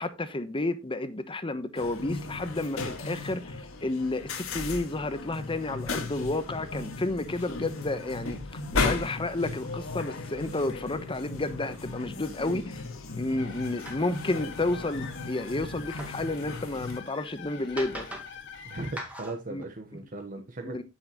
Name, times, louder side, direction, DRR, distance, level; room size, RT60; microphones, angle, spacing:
voice 1, 0.0-8.4 8.7-12.8 13.1-18.1 19.5-19.6 20.6-20.8, left 2 dB, 25° left, 1.0 m, -31 dB
sound 1, 1.8-17.0, left 3 dB, 75° left, 1.8 m, -36 dB
sound 2, 6.5-6.9 7.2-7.5 7.8-8.4 8.7-8.9 9.8-10.1 11.1-11.2 11.8-12.3 12.8-12.9 13.3-13.5 13.8-17.0 17.6-18.5 18.8-19.7, equal, 5° right, 1.8 m, -44 dB
sound 3, 13.4-19.0, left 6 dB, 60° left, 1.9 m, -45 dB
voice 2, 18.6-20.8, right 2 dB, 40° right, 1.1 m, -38 dB
9.1 x 8.6 x 3.0 m
head